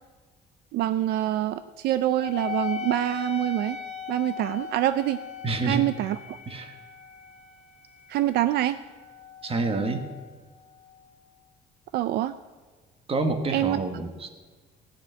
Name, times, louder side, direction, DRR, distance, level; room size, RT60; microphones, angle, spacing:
voice 1, 0.7-3.8 4.1-5.2 5.6-6.4 8.1-8.8 11.9-12.3 13.5-13.8, right 13 dB, 70° right, 13 dB, 0.4 m, -25 dB
Wind instrument woodwind instrument, 2.2-11.2, left 8 dB, 45° left, 2.0 m, -39 dB
voice 2, 5.4-5.9 6.5-6.7 9.4-10.0 13.1-14.3, right 3 dB, 35° right, 7 dB, 1.5 m, -28 dB
16.0 x 5.9 x 8.8 m, 1.4 s
cardioid pair, 110°, 17 cm